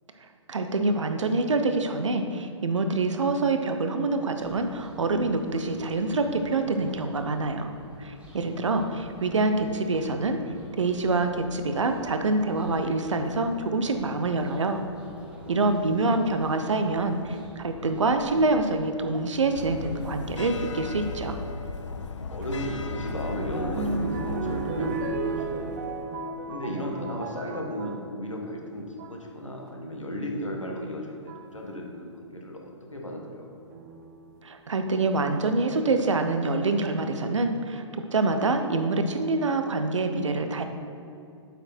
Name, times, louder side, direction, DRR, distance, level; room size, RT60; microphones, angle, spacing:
voice 1, 0.5-7.7 8.0-10.4 10.8-14.8 15.5-21.4 34.4-37.8 38.1-40.6, right 3 dB, 75° right, 7 dB, 0.7 m, -26 dB
sound 1, 4.3-21.1, equal, 10° right, 1.3 m, -49 dB
voice 2, 15.2-15.8 22.3-25.8 26.5-33.5, equal, 90° left, 0 dB, 1.3 m, -35 dB
sound 2, 19.5-26.0, left 3 dB, 70° left, 0.5 m, -36 dB
sound 3, 22.4-28.1 28.8-29.2 30.5-30.6 31.3-31.6 33.7-34.3 35.0-35.1 35.3-35.4, right 3 dB, 35° right, 0.5 m, -34 dB
8.0 x 4.8 x 4.3 m, 2.6 s
figure-of-eight pair, 120°, 16 cm